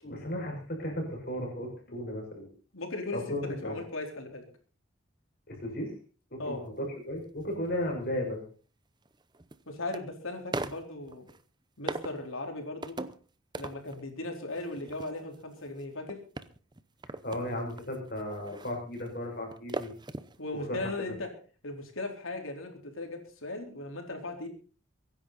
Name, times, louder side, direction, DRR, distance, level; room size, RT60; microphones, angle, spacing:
voice 1, 0.0-2.5 3.1-3.7 5.5-5.9 6.3-8.4 17.2-19.9 20.7-20.8, left 1 dB, 45° left, 2 dB, 6.1 m, -35 dB
voice 2, 2.7-4.5 6.4-6.7 9.7-11.3 11.8-13.0 13.6-16.2 20.4-21.3 21.6-24.5, left 2 dB, 85° left, 3 dB, 4.2 m, -37 dB
sound 1, 7.6-7.7 9.1-10.0 10.5-11.4 11.9-12.3 12.8-13.3 13.5-14.1 14.5-20.4 20.6-20.7, right 2 dB, 20° right, 0.7 m, -40 dB
24.0 x 10.5 x 4.2 m, 0.38 s
head